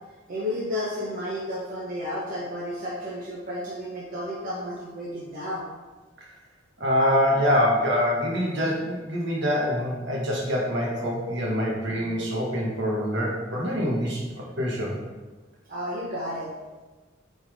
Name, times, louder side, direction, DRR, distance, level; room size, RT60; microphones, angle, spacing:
voice 1, 0.3-5.7 15.7-16.5, left 1 dB, 45° right, -7 dB, 1.2 m, -32 dB
voice 2, 6.8-14.2 14.6-15.0, equal, 65° right, -3 dB, 1.8 m, -25 dB
8.5 x 4.3 x 3.8 m, 1.2 s
head